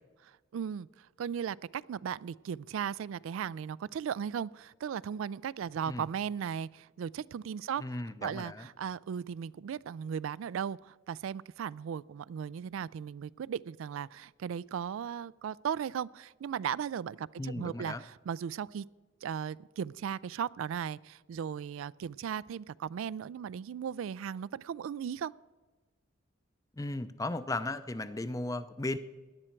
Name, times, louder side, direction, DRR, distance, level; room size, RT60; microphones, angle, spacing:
voice 1, 0.2-18.9 19.2-25.3, right 8 dB, 85° right, 20 dB, 0.3 m, -37 dB
voice 2, 7.8-8.7 17.4-18.0 26.8-29.0, left 2 dB, 15° left, 12 dB, 0.5 m, -36 dB
17.5 x 11.0 x 4.5 m, 1.2 s
head